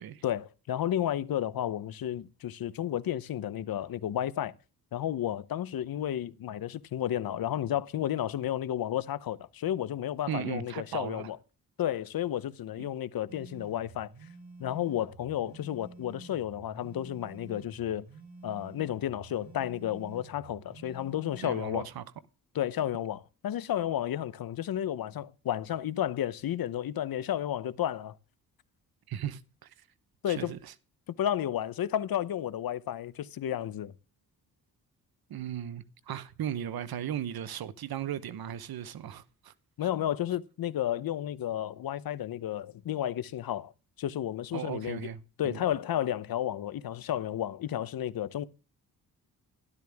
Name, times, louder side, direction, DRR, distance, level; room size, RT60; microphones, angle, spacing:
voice 1, 0.2-4.5 4.9-11.4 11.8-14.1 14.6-18.0 18.4-21.9 22.5-28.2 30.2-30.5 31.2-33.9 39.8-43.7 44.0-45.1 45.4-48.4, left 11 dB, 70° left, 0.9 m, -32 dB
voice 2, 10.3-11.3 12.8-12.9 21.4-22.0 29.1-29.7 30.3-30.7 35.3-39.5 39.8-39.9 44.5-45.6, right 10 dB, 75° right, 1.1 m, -37 dB
sound 1, 13.3-21.8, right 3 dB, 45° right, 4.1 m, -50 dB
12.5 x 12.5 x 3.5 m
cardioid pair, 95°, 37 cm